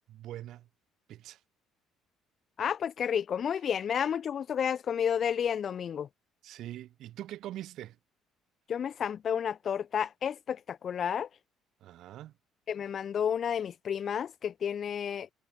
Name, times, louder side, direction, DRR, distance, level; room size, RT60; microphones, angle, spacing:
voice 1, 0.1-0.7 1.1-1.4 6.4-8.0 11.8-12.3, right 13 dB, 70° right, 2.3 m, -43 dB
voice 2, 2.6-6.1 8.7-11.3 12.7-15.3, left 8 dB, 50° left, 1.1 m, -31 dB
supercardioid pair, 75°, 0 cm